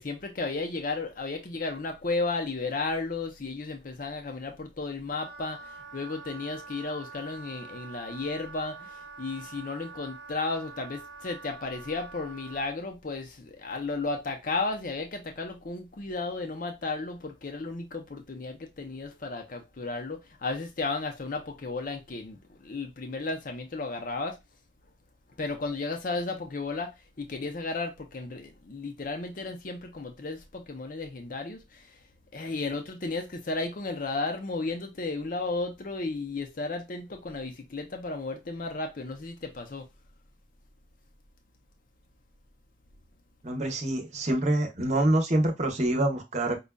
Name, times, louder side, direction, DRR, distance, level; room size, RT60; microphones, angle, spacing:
voice 1, 0.0-24.4 25.4-32.0 32.3-39.9, left 3 dB, 45° left, 0.6 m, -34 dB
Wind instrument woodwind instrument, 5.1-12.7, right 4 dB, 65° right, 0.8 m, -46 dB
voice 2, 43.4-46.6, right 1 dB, 35° right, 0.8 m, -26 dB
5.1 x 2.3 x 2.2 m
head